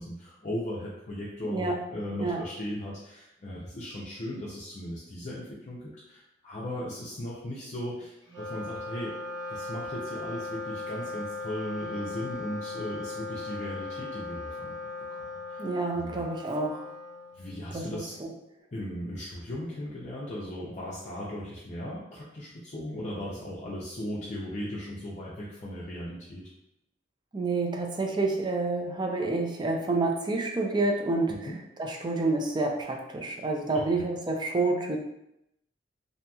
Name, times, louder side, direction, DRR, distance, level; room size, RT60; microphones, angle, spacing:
voice 1, 0.0-9.2 9.5-15.6 15.9-16.2 17.3-18.1 18.7-26.5 31.5-31.6 33.7-33.9, left 1 dB, 40° left, -6 dB, 0.5 m, -37 dB
Wind instrument woodwind instrument, 8.2-17.8, left 3 dB, 40° right, 1.4 m, -38 dB
voice 2, 15.6-16.9 17.7-18.3 27.3-31.5 31.8-35.0, right 3 dB, 25° right, 2 dB, 0.4 m, -28 dB
2.8 x 2.7 x 2.3 m, 0.83 s
head